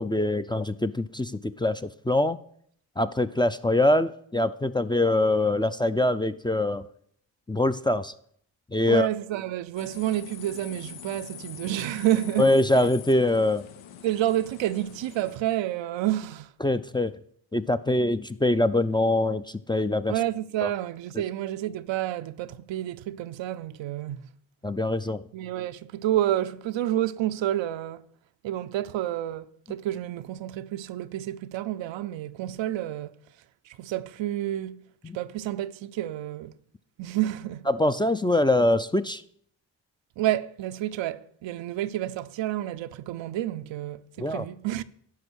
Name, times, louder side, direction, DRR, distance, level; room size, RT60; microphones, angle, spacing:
voice 1, 0.0-2.4 3.0-6.9 7.5-8.1 8.7-9.1 12.4-13.7 16.6-17.2 17.5-20.1 20.6-20.7 24.6-25.2 35.0-35.2 37.7-39.2 44.2-44.5, left 1 dB, 10° left, 0.4 m, -24 dB
voice 2, 8.9-12.5 14.0-16.5 20.1-24.2 25.3-28.0 28.4-33.2 33.7-34.9 35.1-36.5 37.0-37.7 40.2-44.8, right 13 dB, 80° right, 0.6 m, -29 dB
sound 1, 9.8-15.4, left 9 dB, 85° left, 0.6 m, -44 dB
11.5 x 4.9 x 6.2 m
supercardioid pair, 45°, 45 cm